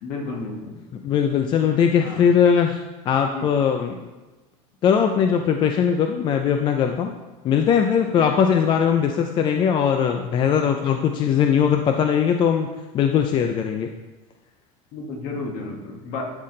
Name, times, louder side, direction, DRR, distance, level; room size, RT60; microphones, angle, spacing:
voice 1, 0.0-0.7 2.0-2.3 3.3-3.5 14.9-16.2, left 3 dB, 55° left, 1 dB, 1.4 m, -32 dB
voice 2, 0.9-2.8 3.1-4.0 4.8-7.1 7.4-12.7 12.9-13.9, left 7 dB, 30° left, 5 dB, 0.4 m, -20 dB
11.5 x 4.1 x 3.2 m, 1.1 s
cardioid pair, 150°, 16 cm